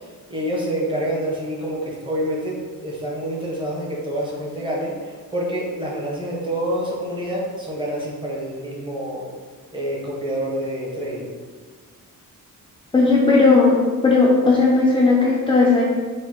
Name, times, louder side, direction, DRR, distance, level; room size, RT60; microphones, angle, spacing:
voice 1, 0.3-9.2 9.7-11.4, right 1 dB, 15° right, -4 dB, 0.8 m, -27 dB
voice 2, 12.9-13.8 14.0-15.8, left 3 dB, 15° left, -3 dB, 0.3 m, -16 dB
5.1 x 2.1 x 3.6 m, 1.5 s
wide cardioid pair, 175°, 34 cm